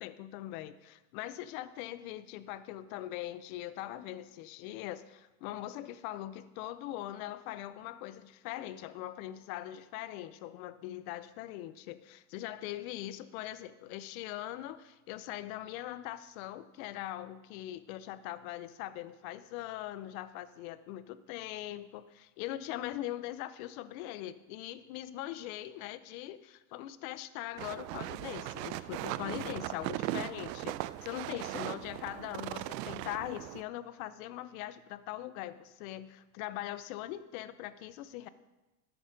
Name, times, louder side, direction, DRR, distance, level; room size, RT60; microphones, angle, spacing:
voice 1, 0.0-38.3, left 14 dB, 60° left, 15 dB, 0.7 m, -41 dB
sound 1, 27.6-33.6, right 15 dB, 85° right, 0.5 m, -38 dB
13.5 x 5.4 x 5.0 m, 1.0 s
supercardioid pair, 120°, 49 cm